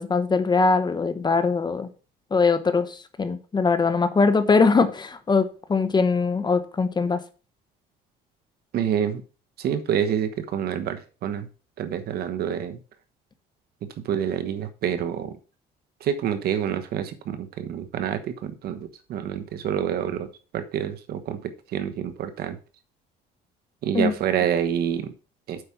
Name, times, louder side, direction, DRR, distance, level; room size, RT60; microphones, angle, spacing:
voice 1, 0.0-1.9 2.3-7.2 23.9-24.1, left 4 dB, 25° left, 0.9 m, -21 dB
voice 2, 8.7-9.2 9.6-11.5 11.8-12.8 14.0-15.3 16.0-22.6 23.8-25.1 25.5-25.6, right 9 dB, 65° right, 1.2 m, -27 dB
8.1 x 5.2 x 5.8 m
cardioid pair, 110°, 17 cm